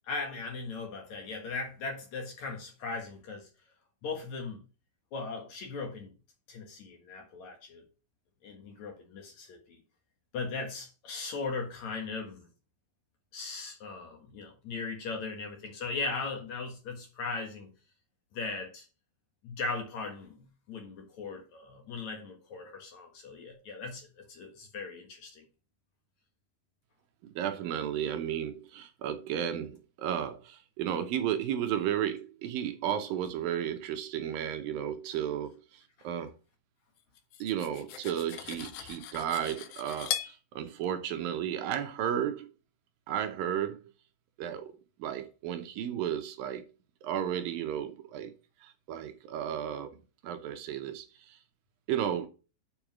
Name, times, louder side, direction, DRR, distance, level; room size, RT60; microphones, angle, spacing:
voice 1, 0.1-3.5 4.0-4.6 5.1-6.1 6.5-7.8 8.4-9.8 10.3-12.5 13.3-17.7 18.3-18.8 19.4-20.4 20.7-25.4 36.0-36.1, left 4 dB, 55° left, 2.6 m, -38 dB
voice 2, 27.4-36.3 37.4-42.5 43.1-43.8 44.4-44.7 45.0-46.6 47.0-48.3 48.6-50.0 50.2-51.4 51.9-52.3, right 10 dB, 75° right, 2.4 m, -33 dB
Cutlery silverware, 37.2-40.4, left 11 dB, 80° left, 1.7 m, -39 dB
7.1 x 5.2 x 6.0 m
omnidirectional pair, 4.3 m